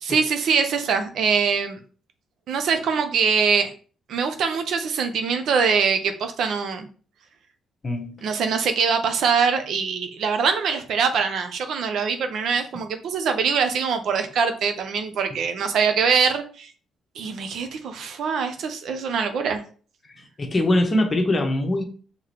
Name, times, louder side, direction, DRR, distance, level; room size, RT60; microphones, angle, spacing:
voice 1, 0.0-1.8 2.5-3.7 4.1-6.9 8.2-16.7 17.2-19.6, right 6 dB, 70° right, 0.6 m, -23 dB
voice 2, 7.8-8.2 15.3-15.4 20.0-21.8, left 1 dB, 30° left, 1.0 m, -23 dB
4.8 x 3.0 x 3.0 m
cardioid pair, 90°, 0 cm